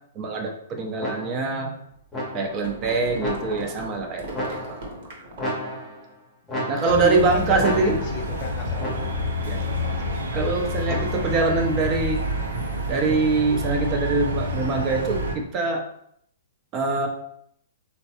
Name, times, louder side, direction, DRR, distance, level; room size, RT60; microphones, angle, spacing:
voice 1, 0.1-1.7 2.3-4.8 6.7-7.9 9.4-9.6 10.3-12.2 12.9-15.8 16.7-17.1, right 3 dB, 30° right, 2 dB, 0.5 m, -24 dB
sound 1, 1.0-1.6 2.1-2.7 3.2-3.8 4.3-5.0 5.4-6.1 6.5-7.2 7.6-8.3 8.8-9.4 10.9-11.5, equal, 15° left, 0.8 m, -33 dB
sound 2, 2.0-5.7, right 1 dB, 60° right, 0.9 m, -37 dB
voice 2, 6.5-9.1, left 3 dB, 40° left, 3 dB, 0.4 m, -31 dB
sound 3, 6.8-15.4, left 1 dB, 90° right, 0.6 m, -28 dB
3.2 x 2.1 x 2.8 m, 0.68 s
hypercardioid pair, 135°, 0 cm